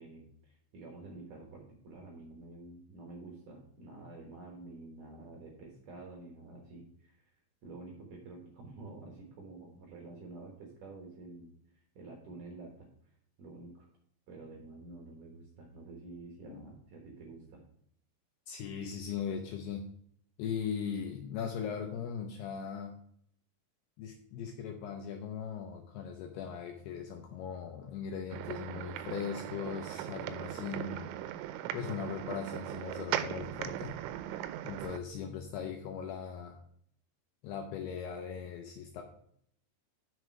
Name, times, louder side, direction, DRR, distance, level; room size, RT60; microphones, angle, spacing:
voice 1, 0.0-7.3 7.6-12.9 13.4-13.9 14.3-17.7, right 3 dB, 65° right, 0 dB, 2.2 m, -49 dB
voice 2, 18.5-19.9 20.4-22.9 24.0-31.1 31.7-34.0 34.6-36.6 37.4-39.0, left 7 dB, 80° left, 3 dB, 2.4 m, -39 dB
sound 1, 28.3-35.0, right 12 dB, 90° right, 3.0 m, -39 dB
8.2 x 6.3 x 4.6 m, 0.66 s
omnidirectional pair, 5.4 m